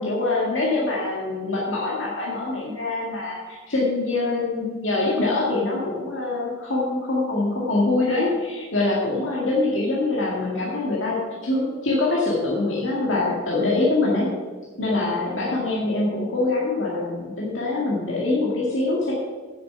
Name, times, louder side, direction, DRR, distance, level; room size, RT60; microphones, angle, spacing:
voice 1, 0.0-11.2 11.4-14.3 14.8-19.1, left 2 dB, 70° left, -5 dB, 2.1 m, -24 dB
8.6 x 6.8 x 8.1 m, 1.4 s
head